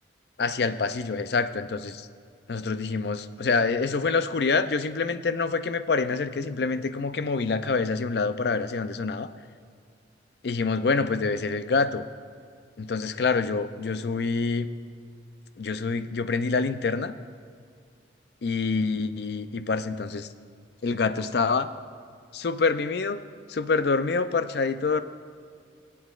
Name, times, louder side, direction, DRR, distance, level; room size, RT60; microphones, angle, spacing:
voice 1, 0.4-2.1 2.5-9.3 10.4-12.0 12.8-14.7 15.6-17.1 18.4-20.3 20.8-21.7 22.3-23.2 23.5-25.0, left 4 dB, 60° left, 11 dB, 0.4 m, -26 dB
23.0 x 8.5 x 2.4 m, 2.2 s
head